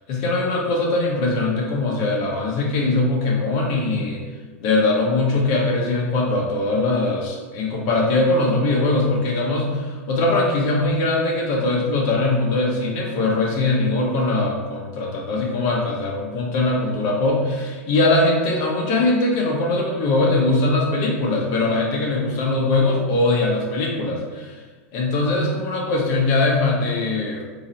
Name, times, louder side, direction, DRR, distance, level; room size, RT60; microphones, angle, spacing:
voice 1, 0.1-4.2 4.6-24.6 24.9-27.4, left 2 dB, 55° left, -1 dB, 1.2 m, -21 dB
3.8 x 2.9 x 4.2 m, 1.4 s
hypercardioid pair, 100°, 7 cm